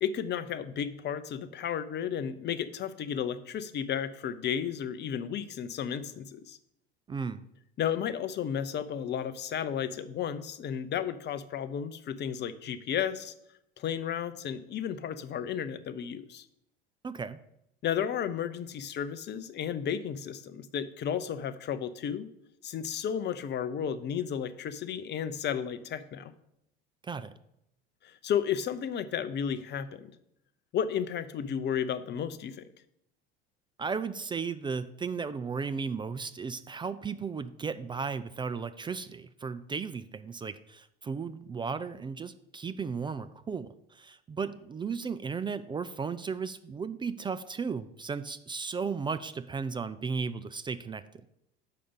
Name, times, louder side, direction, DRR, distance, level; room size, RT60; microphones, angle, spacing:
voice 1, 0.0-6.6 7.8-13.3 13.8-16.5 17.8-22.3 22.6-26.3 28.0-30.1 30.7-32.6, left 8 dB, 35° left, 14 dB, 0.7 m, -33 dB
voice 2, 7.1-7.4 17.0-17.4 27.0-27.3 33.8-51.0, right 5 dB, 15° right, 12 dB, 0.3 m, -35 dB
6.6 x 5.0 x 7.0 m, 0.80 s
hypercardioid pair, 75°, 30 cm